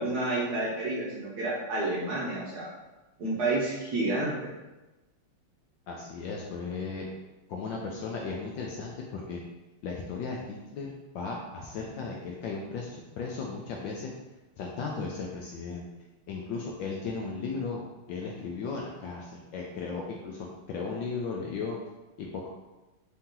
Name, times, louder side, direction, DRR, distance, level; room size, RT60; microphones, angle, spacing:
voice 1, 0.0-2.7 3.2-4.5, right 2 dB, 60° right, -6 dB, 1.1 m, -30 dB
voice 2, 5.9-7.0 7.5-9.4 9.8-10.9 11.1-14.1 14.6-15.8 16.3-17.8 18.1-21.8 22.2-22.5, left 4 dB, 75° left, -1 dB, 1.1 m, -36 dB
4.2 x 2.8 x 3.7 m, 1.1 s
omnidirectional pair, 2.4 m